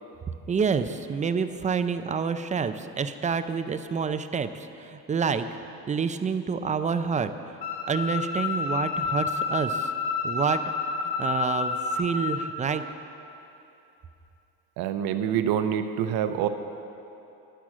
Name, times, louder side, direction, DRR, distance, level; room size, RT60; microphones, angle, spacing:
voice 1, 0.5-5.5 5.9-7.3 7.9-9.9 10.2-10.6 11.2-12.8, right 6 dB, 20° right, 10 dB, 0.4 m, -28 dB
sound 1, 7.6-12.4, left 4 dB, 75° left, 3.1 m, -29 dB
voice 2, 14.8-16.5, right 9 dB, 70° right, 8 dB, 0.8 m, -26 dB
11.0 x 9.1 x 7.4 m, 2.8 s
cardioid pair, 130°, 38 cm